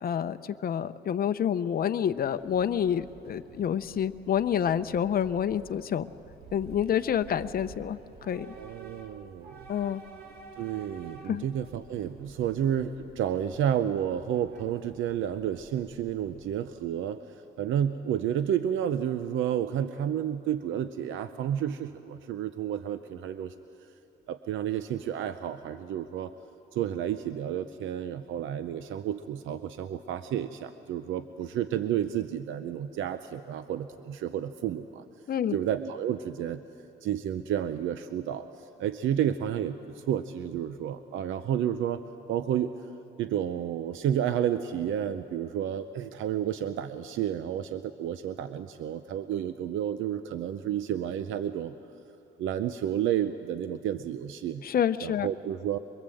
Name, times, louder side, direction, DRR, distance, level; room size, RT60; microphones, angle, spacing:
voice 1, 0.0-6.1 6.5-8.5 9.7-10.0 11.3-11.4 35.3-35.5 54.6-55.3, left 9 dB, 50° left, 10 dB, 0.7 m, -28 dB
Train / Subway metro underground, 2.1-16.9, right 3 dB, 50° right, 2.5 m, -51 dB
voice 2, 8.6-9.7 10.6-17.2 17.6-23.5 24.3-26.3 26.7-35.0 35.5-36.6 37.0-42.0 42.3-42.7 43.2-51.7 52.4-54.6 55.0-55.8, right 10 dB, 80° right, 10 dB, 0.7 m, -31 dB
23.5 x 21.5 x 7.8 m, 2.8 s
cardioid pair, 90°, 20 cm